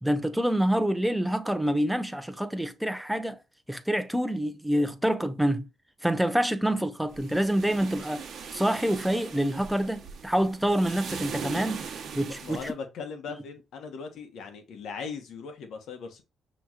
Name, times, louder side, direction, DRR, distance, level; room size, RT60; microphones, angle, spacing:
voice 1, 0.0-3.4 3.7-5.6 6.0-8.2 8.5-11.9 12.1-12.7, right 1 dB, 5° right, 0.6 m, -27 dB
sound 1, 7.1-12.7, right 6 dB, 60° right, 1.0 m, -40 dB
voice 2, 12.3-16.2, left 5 dB, 75° left, 1.1 m, -39 dB
5.8 x 3.1 x 2.4 m
cardioid pair, 90°, 0 cm